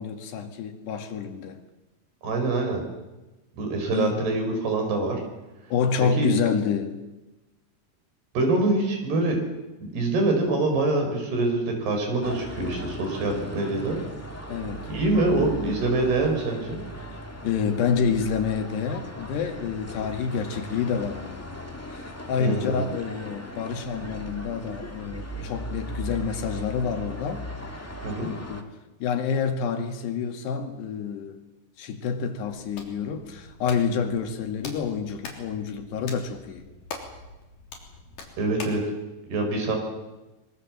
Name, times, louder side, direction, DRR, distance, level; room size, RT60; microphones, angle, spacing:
voice 1, 0.0-1.6 3.9-4.2 5.7-7.0 14.5-14.9 17.4-21.4 21.9-27.5 28.2-28.7 29.0-31.4 31.8-36.7, left 6 dB, 90° left, 5 dB, 4.2 m, -28 dB
voice 2, 2.2-2.8 3.6-5.2 6.0-6.3 8.4-9.4 9.9-14.0 14.9-16.8 22.4-22.8 28.0-28.3 38.4-38.8 39.3-39.8, right 2 dB, 75° right, 4 dB, 7.0 m, -25 dB
sound 1, 12.2-28.6, equal, 15° left, 0.5 m, -38 dB
Hands, 32.4-38.9, left 4 dB, 70° left, 5.3 m, -43 dB
24.5 x 23.0 x 7.6 m, 1.1 s
omnidirectional pair, 4.7 m